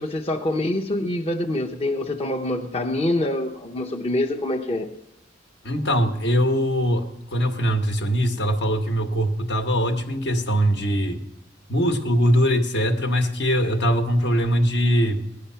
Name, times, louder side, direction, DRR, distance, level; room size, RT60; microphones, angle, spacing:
voice 1, 0.0-4.9, left 1 dB, 30° left, 0 dB, 0.8 m, -25 dB
voice 2, 5.6-11.2 11.7-15.3, equal, 60° left, 6 dB, 1.3 m, -22 dB
17.5 x 10.5 x 5.7 m, 0.85 s
head